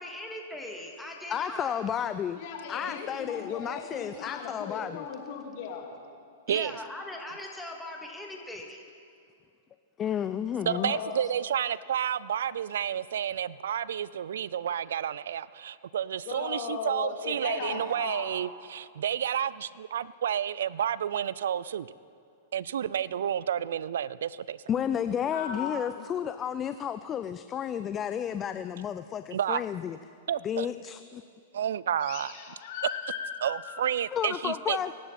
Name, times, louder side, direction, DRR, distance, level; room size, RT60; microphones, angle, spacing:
voice 1, 0.0-1.8 6.5-8.8, left 1 dB, 5° left, 0 dB, 2.3 m, -40 dB
voice 2, 1.3-2.4 2.7-5.0 10.0-11.0 24.7-30.0 30.4-31.2 34.1-34.9, left 9 dB, 25° left, 11 dB, 0.4 m, -32 dB
voice 3, 2.4-5.9 10.6-11.1 16.3-18.3 25.2-26.1 32.0-33.8, left 6 dB, 55° left, 2 dB, 2.5 m, -37 dB
voice 4, 10.7-21.9 22.5-24.6 29.3-29.7 30.3-30.7 31.5-32.3 33.4-34.8, right 9 dB, 75° right, 20 dB, 0.3 m, -30 dB
23.5 x 11.5 x 4.2 m, 2.4 s
hypercardioid pair, 115°, 0 cm